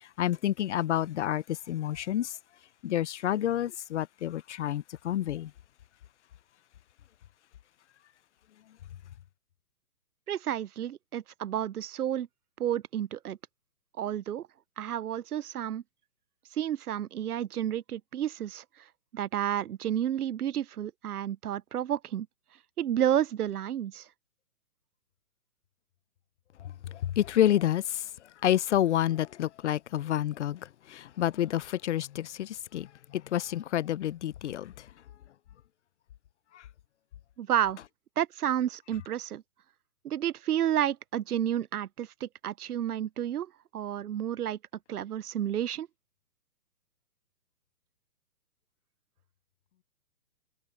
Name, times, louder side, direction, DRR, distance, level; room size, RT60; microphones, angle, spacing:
voice 1, 0.0-2.4 2.8-5.5 26.6-28.1 28.4-34.9 36.5-36.6, left 12 dB, 50° left, 0.8 m, -29 dB
voice 2, 10.3-12.3 12.6-13.4 14.0-14.5 14.8-15.8 16.5-18.6 19.1-22.3 22.8-24.1 37.4-37.8 38.2-39.4 40.0-44.6 44.9-45.9, right 10 dB, 70° right, 0.9 m, -31 dB
hypercardioid pair, 145°, 46 cm